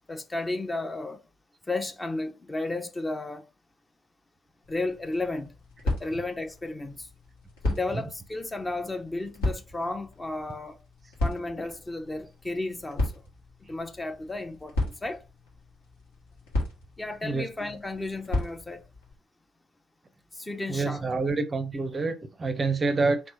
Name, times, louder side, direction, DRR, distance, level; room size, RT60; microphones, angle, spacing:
voice 1, 0.1-1.2 1.7-3.4 4.7-5.6 5.8-7.1 7.6-10.8 11.2-13.2 13.7-15.2 17.0-18.8 20.3-21.1, left 2 dB, 15° left, 0.6 m, -33 dB
sound 1, 4.6-19.1, left 1 dB, 75° left, 1.3 m, -35 dB
voice 2, 20.7-23.2, right 3 dB, 30° right, 0.5 m, -27 dB
3.5 x 3.2 x 3.1 m
figure-of-eight pair, 45°, 0 cm